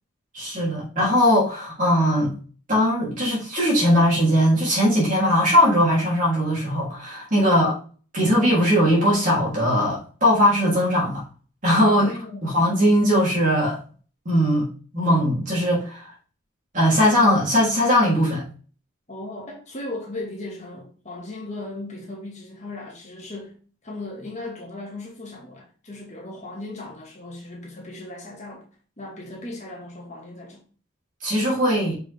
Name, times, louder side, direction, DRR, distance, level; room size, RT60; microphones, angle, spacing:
voice 1, 0.3-2.3 2.7-7.7 8.1-11.2 11.6-12.1 12.4-13.8 14.2-14.7 14.9-16.1 16.7-18.4 31.2-31.9, equal, 40° right, 3.3 m, -20 dB
voice 2, 11.8-12.5 19.1-28.7 29.0-30.6, left 2 dB, 35° left, 1.8 m, -37 dB
6.2 x 4.9 x 3.6 m
head